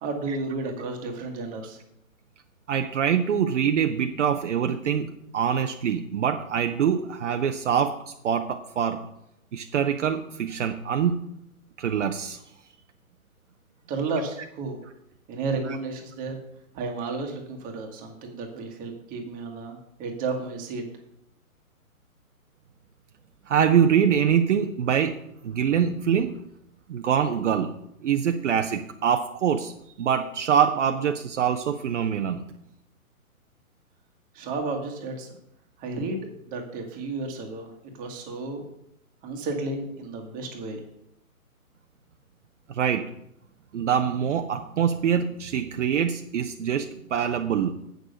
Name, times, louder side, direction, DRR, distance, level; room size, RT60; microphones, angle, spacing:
voice 1, 0.0-1.8 13.9-14.8 15.3-16.4 16.7-20.8 34.3-35.3 35.8-36.2 36.5-38.6 39.2-40.8, right 3 dB, 20° right, 2 dB, 1.5 m, -32 dB
voice 2, 2.7-9.1 9.5-11.2 11.8-12.4 15.4-15.8 23.5-25.2 25.4-26.3 26.9-27.7 28.0-29.7 30.0-32.4 42.7-43.1 43.7-47.7, right 8 dB, 55° right, 6 dB, 0.8 m, -24 dB
8.1 x 6.4 x 6.6 m, 0.78 s
hypercardioid pair, 140°, 43 cm